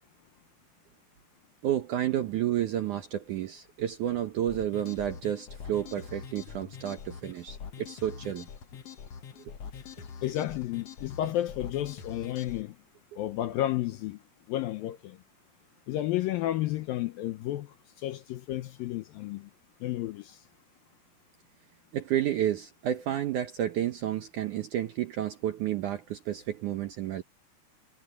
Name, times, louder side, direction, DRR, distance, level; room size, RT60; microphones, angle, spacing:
voice 1, 1.6-8.5 21.9-27.2, right 11 dB, 80° right, 1.8 m, -31 dB
sound 1, 4.5-12.6, left 6 dB, 60° left, 1.7 m, -44 dB
voice 2, 10.2-12.7 13.2-14.2 14.5-15.2 15.9-17.7 18.0-19.5 19.8-20.4, left 14 dB, 80° left, 2.1 m, -32 dB
omnidirectional pair, 5.0 m